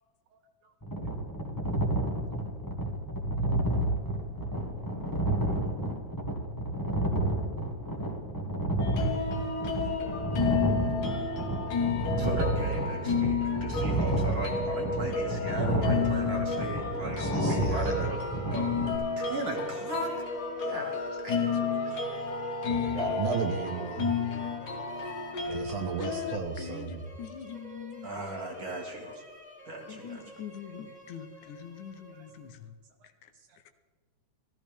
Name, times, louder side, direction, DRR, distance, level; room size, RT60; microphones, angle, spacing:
sound 1, 0.8-18.9, right 1 dB, 20° left, 0.5 m, -30 dB
sound 2, 8.8-26.4, left 5 dB, 60° left, 1.0 m, -32 dB
voice 1, 12.2-18.2 18.5-18.9 19.2-20.1 20.6-21.5 28.0-29.2 29.7-30.2, right 2 dB, 35° right, 0 dB, 2.0 m, -37 dB
voice 2, 17.1-18.1 22.7-24.2 25.5-27.0, right 6 dB, 70° right, 5 dB, 1.9 m, -34 dB
sound 3, 17.6-32.7, right 1 dB, 5° right, 1.0 m, -49 dB
voice 3, 26.0-28.3 29.9-32.7 33.0-33.7, left 7 dB, 80° left, 8 dB, 2.3 m, -44 dB
15.0 x 13.5 x 3.4 m, 1.5 s
omnidirectional pair, 3.4 m